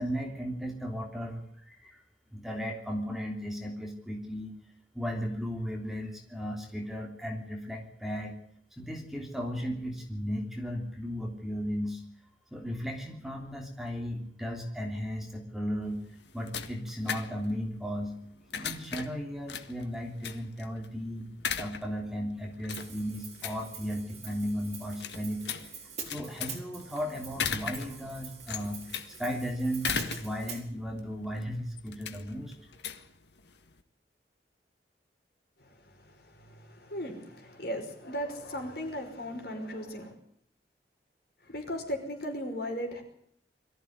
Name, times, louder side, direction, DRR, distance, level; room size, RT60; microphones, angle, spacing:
voice 1, 0.0-2.0 2.3-4.5 4.9-8.3 8.7-12.0 12.5-16.0 16.3-18.1 18.5-21.3 21.6-25.5 26.1-32.5, equal, ahead, 1 dB, 3.2 m, -35 dB
sound 1, 15.8-33.8, left 6 dB, 75° left, 1.7 m, -39 dB
Hi-hat, 22.7-30.6, right 7 dB, 40° right, 4.4 m, -45 dB
voice 2, 35.6-40.1 41.4-43.0, equal, 60° left, 3 dB, 5.5 m, -37 dB
22.5 x 14.5 x 9.5 m, 0.67 s
head